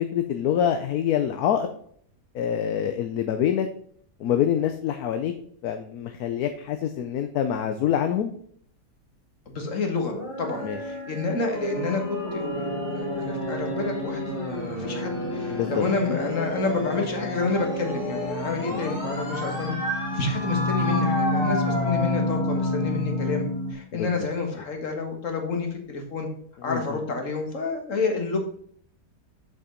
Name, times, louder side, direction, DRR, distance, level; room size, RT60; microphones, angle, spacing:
voice 1, 0.0-1.7 2.3-3.7 4.2-5.3 5.6-8.3 10.6-10.8 15.5-15.8 18.7-18.8 23.9-24.1 26.7-27.0, left 9 dB, 70° left, 7 dB, 1.1 m, -25 dB
voice 2, 9.5-19.8 20.1-26.3 26.6-28.4, left 3 dB, 50° left, 4 dB, 1.9 m, -29 dB
sound 1, 10.1-23.7, left 1 dB, 30° left, 1.9 m, -29 dB
7.0 x 6.2 x 3.8 m, 0.62 s
omnidirectional pair, 1.8 m